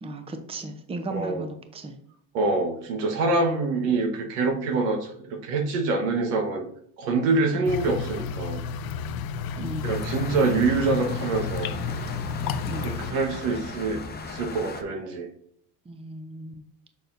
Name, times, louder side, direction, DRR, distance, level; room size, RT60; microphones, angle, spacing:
voice 1, 0.0-2.0 7.5-7.7 9.6-9.9 12.7-12.9 15.9-16.5, right 2 dB, 15° right, 7 dB, 0.7 m, -35 dB
voice 2, 1.1-1.5 2.3-6.6 7.0-8.6 9.8-11.7 12.8-15.3, right 3 dB, 80° right, 4 dB, 1.4 m, -25 dB
sound 1, 7.6-13.1, left 6 dB, 50° left, 0.6 m, -32 dB
sound 2, 9.8-14.8, left 3 dB, 20° left, 0.8 m, -37 dB
6.7 x 6.5 x 2.6 m, 0.69 s
supercardioid pair, 105°, 45 cm